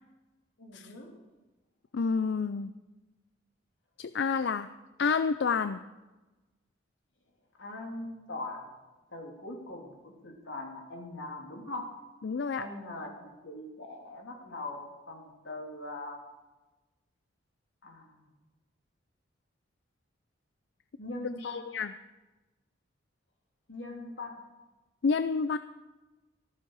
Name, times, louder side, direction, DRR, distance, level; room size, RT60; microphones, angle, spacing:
voice 1, 0.6-1.1 7.6-8.7 9.1-11.9 12.6-14.8 15.1-16.2 17.8-18.2 21.0-21.6 23.7-24.4, left 2 dB, 90° left, 0 dB, 3.2 m, -41 dB
voice 2, 1.9-2.7 4.0-4.7 5.0-5.8 12.2-12.7 21.4-21.9 25.0-25.6, left 5 dB, 65° left, 12 dB, 0.4 m, -29 dB
14.0 x 14.0 x 4.8 m, 1.1 s
head